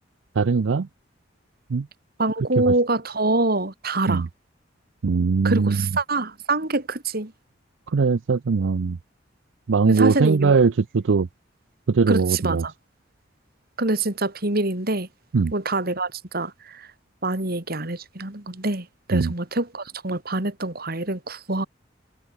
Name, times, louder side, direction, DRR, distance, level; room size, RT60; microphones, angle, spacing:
voice 1, 0.4-0.9 1.7-1.9 2.6-2.7 4.1-4.3 5.0-5.9 7.9-9.0 9.7-11.3 11.9-12.6 15.3-15.5 19.1-19.3, right 4 dB, 85° right, 0.5 m, -20 dB
voice 2, 2.2-4.2 5.4-7.3 9.8-10.5 12.1-12.7 13.8-15.1 15.5-16.9 17.2-21.7, right 2 dB, 55° right, 3.3 m, -25 dB
head